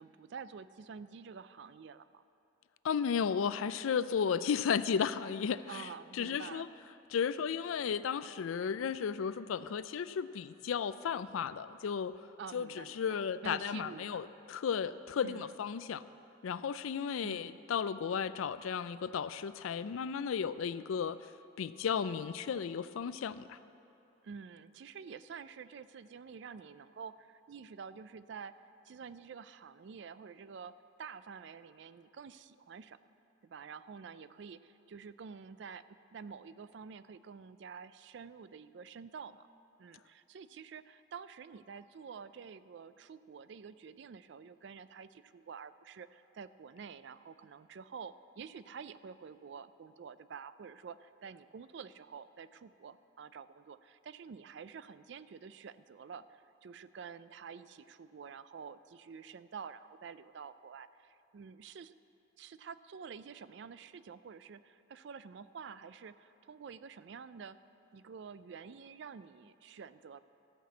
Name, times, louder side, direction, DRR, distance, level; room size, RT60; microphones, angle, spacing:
voice 1, 0.0-2.2 5.7-6.7 12.4-14.3 15.2-15.5 17.2-17.6 24.2-28.5 28.8-30.7 31.0-33.0 33.4-35.8 36.1-39.5 39.8-61.9 62.4-67.6 67.9-70.2, right 6 dB, 60° right, 14 dB, 0.3 m, -49 dB
voice 2, 2.8-5.8 6.1-6.7 7.1-12.2 12.5-16.0 16.4-21.2 21.6-23.6, left 7 dB, 85° left, 14 dB, 0.4 m, -34 dB
13.5 x 5.9 x 8.2 m, 2.8 s
head